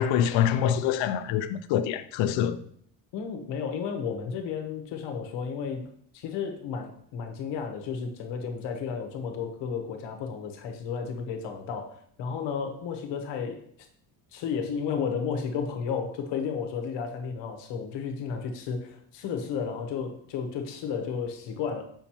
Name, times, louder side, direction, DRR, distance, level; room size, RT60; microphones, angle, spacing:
voice 1, 0.0-2.6, left 9 dB, 85° left, 0.7 m, -25 dB
voice 2, 3.1-5.9 6.1-11.9 12.2-13.6 14.3-21.8, left 6 dB, 70° left, 1.2 m, -33 dB
7.1 x 5.5 x 3.0 m
cardioid pair, 180°, 44 cm